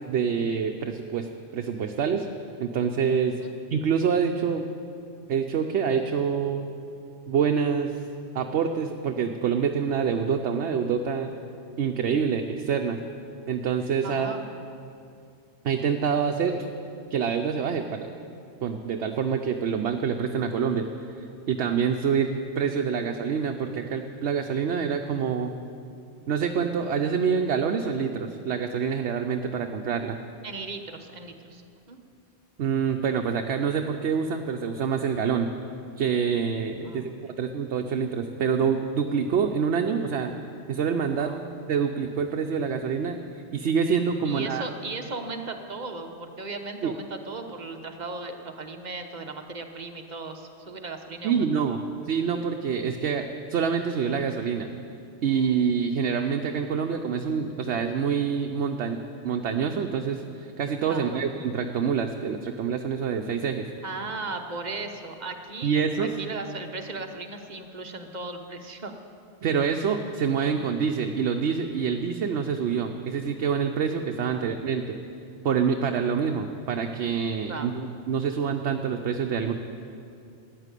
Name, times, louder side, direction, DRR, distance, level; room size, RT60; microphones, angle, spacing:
voice 1, 0.1-1.3 1.5-2.3 2.6-3.4 3.7-4.7 5.3-6.7 7.3-8.0 8.3-11.3 11.8-13.0 13.5-14.3 15.6-16.7 17.1-18.1 18.6-20.9 21.2-25.5 26.3-30.2 32.6-35.5 36.0-40.3 40.7-41.3 41.7-43.2 43.5-44.7 46.8-46.9 51.2-51.8 52.1-54.7 55.2-63.7 65.6-66.1 69.4-75.0 75.4-79.5, right 6 dB, 75° right, 4 dB, 1.0 m, -26 dB
voice 2, 14.0-14.4 30.4-31.6 31.9-32.0 36.8-37.4 41.1-41.4 44.2-51.9 60.9-61.2 63.8-68.9 74.3-74.5 77.5-77.7, right 3 dB, 40° right, 5 dB, 1.1 m, -37 dB
14.0 x 9.9 x 8.2 m, 2.5 s
omnidirectional pair, 1.1 m